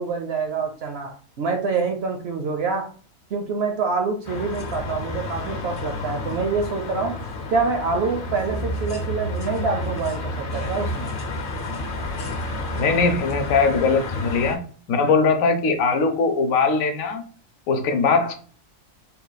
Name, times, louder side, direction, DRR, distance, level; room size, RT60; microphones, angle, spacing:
voice 1, 0.0-2.9 3.3-7.2 7.5-11.1, right 4 dB, 65° right, 5 dB, 0.7 m, -26 dB
sound 1, 4.2-14.6, left 2 dB, 50° left, 0.8 m, -30 dB
voice 2, 12.8-14.6 14.9-17.2 17.7-18.3, left 4 dB, 75° left, 7 dB, 1.1 m, -20 dB
3.8 x 2.3 x 3.9 m, 0.43 s
omnidirectional pair, 1.4 m